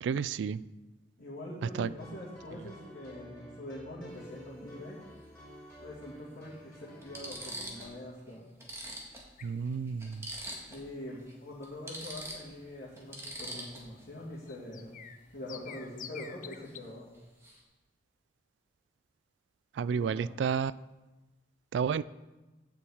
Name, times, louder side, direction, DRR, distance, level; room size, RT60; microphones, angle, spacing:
voice 1, 0.0-0.6 1.8-1.9 9.4-10.3 19.7-20.7 21.7-22.0, right 6 dB, 80° right, 18 dB, 0.3 m, -31 dB
voice 2, 1.2-5.0 5.8-8.5 10.7-14.9 15.3-17.1 19.8-20.3, left 1 dB, 60° left, -10 dB, 2.6 m, -44 dB
sound 1, 1.8-7.9, equal, 10° left, 4.0 m, -51 dB
sound 2, 4.1-4.3 5.7-5.8 6.5-6.6 7.0-8.0 8.3-8.4 8.6-10.9 11.2-11.3 11.6-14.0 16.6-16.9 17.1-17.6, right 1 dB, 15° right, 1.7 m, -43 dB
sound 3, 9.4-16.8, left 8 dB, 45° left, 0.6 m, -52 dB
7.9 x 6.1 x 8.0 m, 1.1 s
head